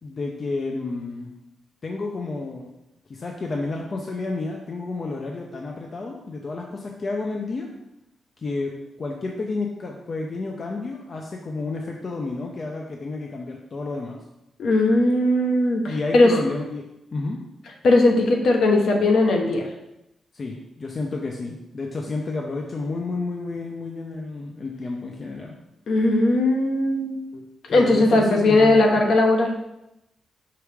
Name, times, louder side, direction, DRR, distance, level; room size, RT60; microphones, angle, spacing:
voice 1, 0.0-1.4 1.8-2.7 3.1-7.7 8.4-14.2 15.9-16.8 17.1-17.4 20.3-25.6 27.7-29.0, left 3 dB, 30° left, 1 dB, 0.5 m, -31 dB
voice 2, 14.6-16.3 17.8-19.6 25.9-27.2 27.7-29.5, left 2 dB, 55° left, 2 dB, 0.9 m, -18 dB
6.0 x 4.7 x 3.4 m, 0.90 s
wide cardioid pair, 180°, 0 cm